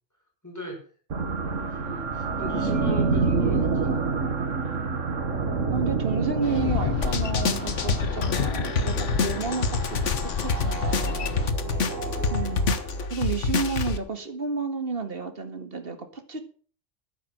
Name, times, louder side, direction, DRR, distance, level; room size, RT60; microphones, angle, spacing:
voice 1, 0.4-0.8 1.4-4.0 11.9-12.5, equal, 15° left, 1 dB, 5.3 m, -39 dB
sound 1, 1.1-13.1, right 4 dB, 85° right, 2.0 m, -29 dB
voice 2, 5.7-10.1 10.4-11.3 12.3-12.7 13.1-16.4, right 4 dB, 50° right, 8 dB, 2.1 m, -31 dB
Boat Water vehicle, 6.4-11.5, left 8 dB, 55° left, 0.9 m, -31 dB
sound 2, 7.0-14.0, left 4 dB, 75° left, 1.6 m, -27 dB
12.5 x 9.5 x 6.2 m, 0.42 s
omnidirectional pair, 1.3 m